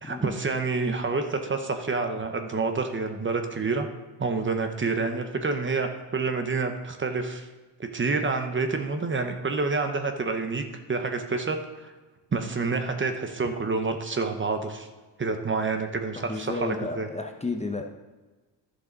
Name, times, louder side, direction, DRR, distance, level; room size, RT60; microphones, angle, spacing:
voice 1, 0.0-3.9 4.2-7.5 7.8-11.9 12.3-14.9 15.2-17.1, right 4 dB, 25° right, 6 dB, 1.0 m, -28 dB
voice 2, 16.2-17.8, left 3 dB, 15° left, 3 dB, 0.8 m, -32 dB
11.5 x 6.5 x 4.0 m, 1.2 s
cardioid pair, 90°, 45 cm